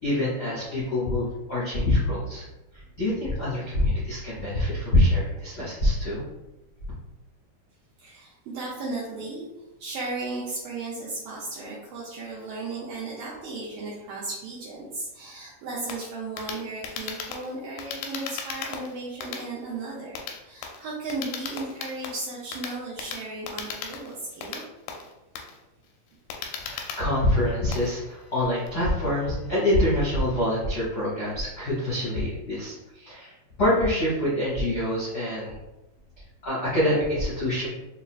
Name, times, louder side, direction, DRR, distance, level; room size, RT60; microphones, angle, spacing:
voice 1, 0.0-2.4 2.7-6.2 26.6-33.3 33.6-35.6 36.4-37.7, left 1 dB, 65° left, -11 dB, 0.9 m, -25 dB
voice 2, 8.0-9.5 9.8-24.6, right 3 dB, 85° right, -5 dB, 1.9 m, -35 dB
sound 1, 15.9-28.7, left 6 dB, 85° left, 2.4 m, -37 dB
7.0 x 2.4 x 2.3 m, 0.99 s
omnidirectional pair, 4.5 m